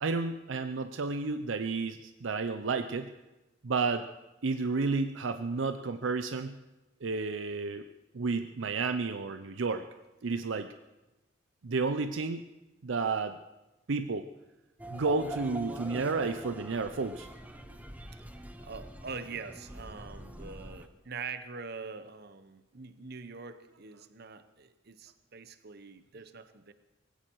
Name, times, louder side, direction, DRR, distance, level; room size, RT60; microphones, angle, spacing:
voice 1, 0.0-3.1 3.6-4.1 4.4-6.6 7.0-7.8 8.1-9.9 10.2-10.7 11.6-12.4 12.8-13.4 13.9-14.3 14.9-17.3, right 4 dB, 75° right, 9 dB, 0.6 m, -31 dB
sound 1, 14.8-20.9, right 1 dB, 10° right, 0.9 m, -44 dB
voice 2, 18.6-26.7, right 5 dB, 55° right, 11 dB, 1.0 m, -44 dB
19.0 x 16.5 x 4.7 m, 1.0 s
head